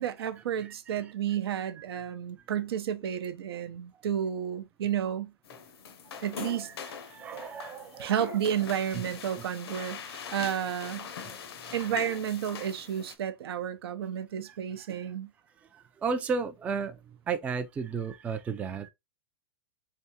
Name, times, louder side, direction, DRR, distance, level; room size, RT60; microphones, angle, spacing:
voice 1, 0.0-5.3 6.2-6.7 8.0-11.1 11.7-15.3, right 9 dB, 80° right, 0.7 m, -31 dB
sound 1, 5.4-13.1, left 6 dB, 90° left, 0.7 m, -42 dB
voice 2, 7.1-8.1 8.9-9.0 11.2-11.3 16.0-17.0 17.3-18.9, right 5 dB, 10° right, 0.3 m, -33 dB
3.5 x 3.4 x 2.8 m
supercardioid pair, 150°, 13 cm